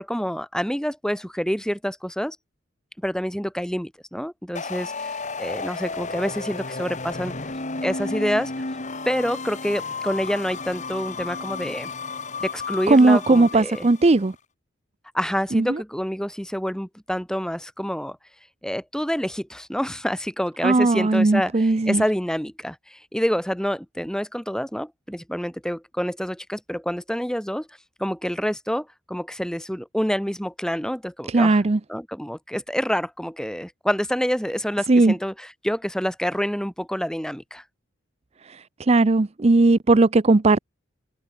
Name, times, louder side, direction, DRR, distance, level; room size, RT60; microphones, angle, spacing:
voice 1, 0.0-2.4 3.0-7.3 7.8-8.5 9.1-11.9 12.4-13.9 15.1-18.2 18.6-27.7 28.0-31.6 31.9-37.6, equal, 5° left, 6.0 m, -27 dB
sound 1, 4.5-14.2, left 3 dB, 40° left, 2.5 m, -33 dB
voice 2, 12.9-14.3 15.5-15.6 20.6-22.0 31.3-31.8 34.9-35.1 38.9-40.6, right 2 dB, 35° right, 0.6 m, -17 dB
head